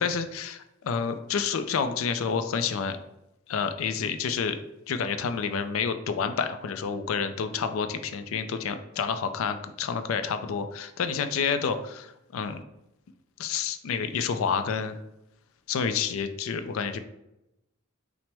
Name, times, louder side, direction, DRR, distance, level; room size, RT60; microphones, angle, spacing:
voice 1, 0.0-3.0 3.5-4.6 4.9-12.6 13.4-15.0 15.7-17.0, left 6 dB, 90° left, 9 dB, 0.4 m, -29 dB
5.7 x 2.1 x 3.3 m, 0.86 s
head